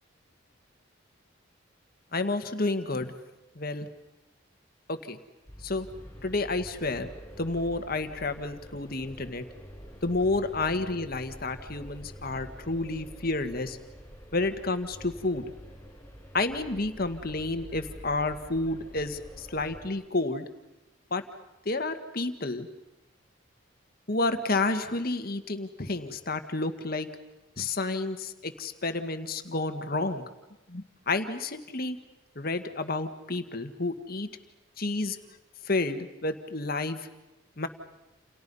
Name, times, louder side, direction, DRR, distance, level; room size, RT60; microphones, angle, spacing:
voice 1, 2.1-3.1 3.5-3.9 4.9-5.2 5.6-5.9 6.2-7.1 7.4-9.4 10.0-13.8 14.3-15.4 16.3-20.4 21.1-21.2 21.6-22.7 24.1-27.1 27.6-30.2 30.7-32.0 32.3-34.3 34.8-35.2 35.6-37.1 37.6-37.7, left 2 dB, 45° left, 8 dB, 1.6 m, -30 dB
sound 1, 5.5-19.9, equal, 10° left, 6.6 m, -46 dB
29.5 x 29.0 x 5.5 m, 1.0 s
head